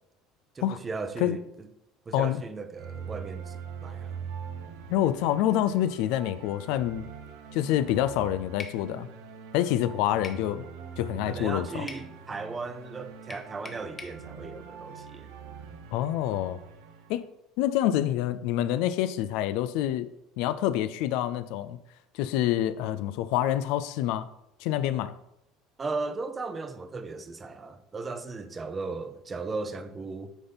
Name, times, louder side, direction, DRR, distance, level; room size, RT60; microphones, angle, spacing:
voice 1, 0.5-1.7 2.1-4.2 11.3-15.3 25.8-30.3, right 3 dB, 25° right, 0.7 m, -36 dB
sound 1, 2.7-17.3, right 6 dB, 80° right, 0.9 m, -43 dB
voice 2, 4.9-7.1 7.5-9.1 9.5-10.6 11.0-11.9 15.9-16.6 17.1-17.3 17.6-20.1 20.4-21.8 22.1-24.3 24.6-25.2, left 12 dB, 75° left, 0.4 m, -27 dB
sound 2, 8.6-8.8 10.2-10.5 11.9-12.1 13.3-14.2, left 4 dB, 25° left, 1.0 m, -42 dB
9.9 x 3.9 x 4.0 m
supercardioid pair, 95°, 0 cm